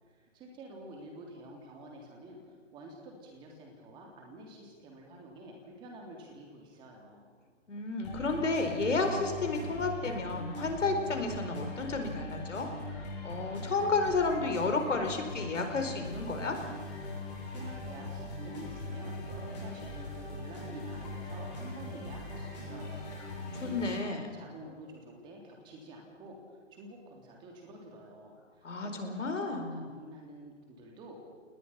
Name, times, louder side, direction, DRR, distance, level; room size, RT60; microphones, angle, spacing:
voice 1, 0.2-2.4 2.7-7.3 17.5-31.2, right 1 dB, 10° right, 0 dB, 3.2 m, -49 dB
voice 2, 7.7-12.7 12.9-16.6 23.5-24.3 28.6-29.8, left 3 dB, 75° left, 5 dB, 4.6 m, -32 dB
sound 1, 8.0-24.0, left 2 dB, 35° left, 7.9 m, -41 dB
28.5 x 19.5 x 5.9 m, 1.5 s
hypercardioid pair, 160°, 37 cm